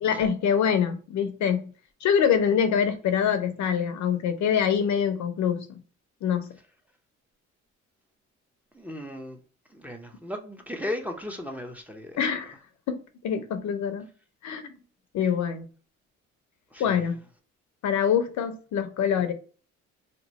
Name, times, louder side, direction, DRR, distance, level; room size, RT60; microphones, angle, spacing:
voice 1, 0.0-1.7 2.0-5.8 6.2-6.5 12.2-12.5 12.9-14.0 14.4-14.6 15.1-15.7 16.8-17.2 17.8-19.3, left 7 dB, 70° left, 0.6 m, -25 dB
voice 2, 8.7-9.4 9.7-12.2 16.7-17.0, left 1 dB, 5° right, 0.6 m, -36 dB
2.9 x 2.2 x 4.0 m
cardioid pair, 90°, 30 cm